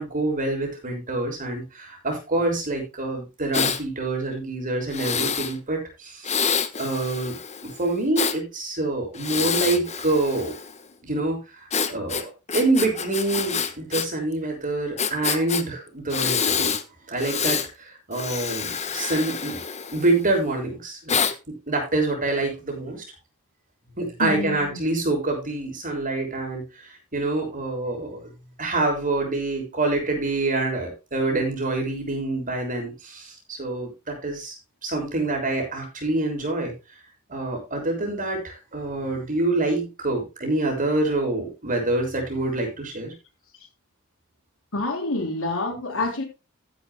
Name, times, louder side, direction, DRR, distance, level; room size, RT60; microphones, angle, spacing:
voice 1, 0.0-7.4 7.6-10.6 11.0-16.7 17.1-19.6 19.9-21.2 21.7-23.0 24.0-28.3 28.6-34.6 34.8-36.7 37.3-43.1, right 2 dB, 40° right, 6.4 m, -26 dB
Breathing, 3.5-3.8 4.9-5.5 6.2-8.4 9.1-10.8 11.7-14.1 14.3-14.4 15.0-15.6 16.1-16.8 17.2-17.7 18.1-20.3 21.1-21.3, left 6 dB, 30° left, 1.2 m, -27 dB
voice 2, 24.2-24.8 44.7-46.2, left 2 dB, 65° left, 3.7 m, -27 dB
14.5 x 11.0 x 2.2 m
head